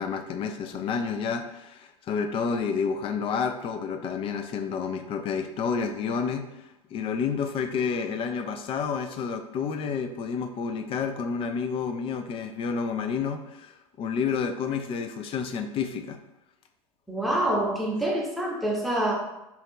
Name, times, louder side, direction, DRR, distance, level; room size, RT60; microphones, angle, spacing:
voice 1, 0.0-6.6 6.9-16.2, left 6 dB, 30° left, 6 dB, 0.3 m, -30 dB
voice 2, 17.1-19.1, right 1 dB, ahead, -3 dB, 0.8 m, -26 dB
2.8 x 2.3 x 3.6 m, 0.93 s
figure-of-eight pair, 80°, 19 cm